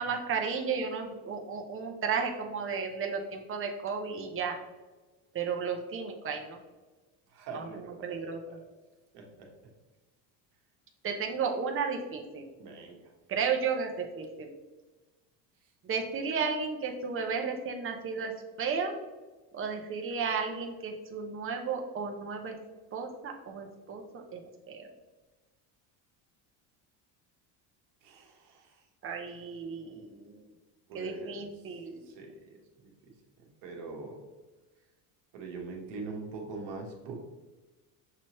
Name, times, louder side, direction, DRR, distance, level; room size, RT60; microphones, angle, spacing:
voice 1, 0.0-4.6 5.3-6.6 7.5-8.6 11.0-12.5 13.3-14.5 15.8-18.3 18.6-18.9 19.5-22.6 22.9-24.4 24.7-24.9 29.0-30.4 30.9-32.0, right 5 dB, 30° right, 3 dB, 0.7 m, -33 dB
voice 2, 7.3-8.6 9.1-9.5 12.6-13.0 28.0-28.8 30.9-31.4 32.1-32.3 33.6-34.2 35.3-37.1, right 3 dB, 70° right, 1 dB, 1.2 m, -42 dB
6.0 x 3.0 x 2.9 m, 1.2 s
supercardioid pair, 105°, 44 cm